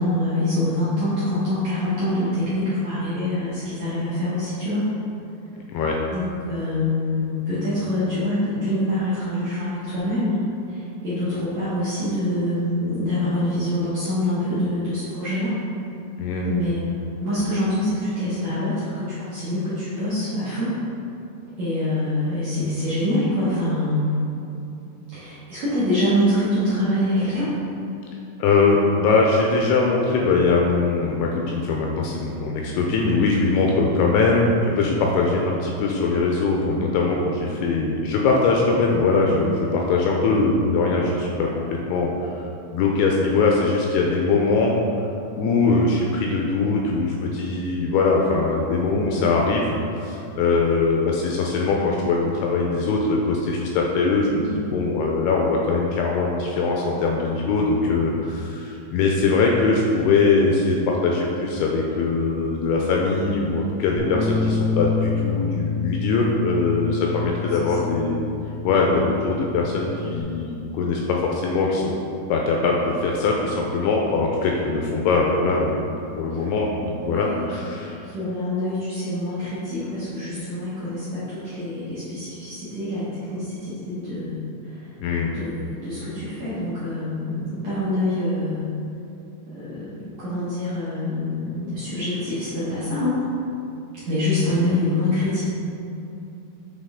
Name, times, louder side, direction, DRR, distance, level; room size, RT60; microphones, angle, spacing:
voice 1, 0.0-4.9 6.1-10.4 10.7-15.6 16.4-20.8 21.6-24.1 25.1-27.5 54.4-54.7 67.6-67.7 77.0-77.8 78.1-84.4 85.3-88.6 89.6-93.2 94.0-95.4, left 1 dB, 65° right, -12 dB, 1.8 m, -25 dB
voice 2, 16.2-16.6 28.4-44.8 45.4-68.2 68.6-71.9 72.3-78.0 85.0-85.3, left 3 dB, 85° left, -1 dB, 2.4 m, -21 dB
Bass guitar, 64.0-70.2, left 4 dB, 85° right, 2.8 m, -27 dB
7.4 x 3.8 x 3.6 m, 2.8 s
omnidirectional pair, 4.9 m